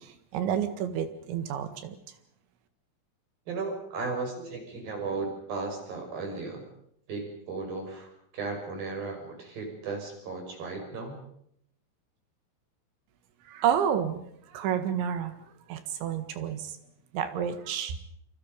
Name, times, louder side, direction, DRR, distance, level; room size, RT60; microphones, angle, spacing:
voice 1, 0.0-2.0 13.5-15.4 15.7-16.8 17.1-18.0, right 9 dB, 70° right, 10 dB, 3.9 m, -30 dB
voice 2, 3.5-6.7 7.1-11.2, right 3 dB, 45° right, 3 dB, 7.4 m, -35 dB
28.0 x 27.0 x 5.4 m, 0.71 s
omnidirectional pair, 5.9 m